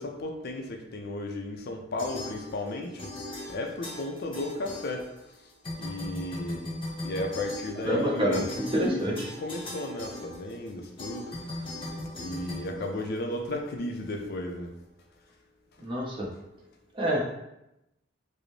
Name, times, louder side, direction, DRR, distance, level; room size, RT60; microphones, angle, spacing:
voice 1, 0.0-3.1 3.5-5.1 5.8-6.7 7.0-11.7 12.2-14.7, left 1 dB, 55° left, 2 dB, 0.4 m, -35 dB
sound 1, 2.0-2.7 3.0-5.3 5.6-13.5, left 1 dB, 25° left, 1.0 m, -39 dB
voice 2, 7.8-9.3 15.8-16.3 16.9-17.2, equal, 25° right, -4 dB, 0.9 m, -27 dB
4.9 x 2.0 x 3.1 m, 0.88 s
head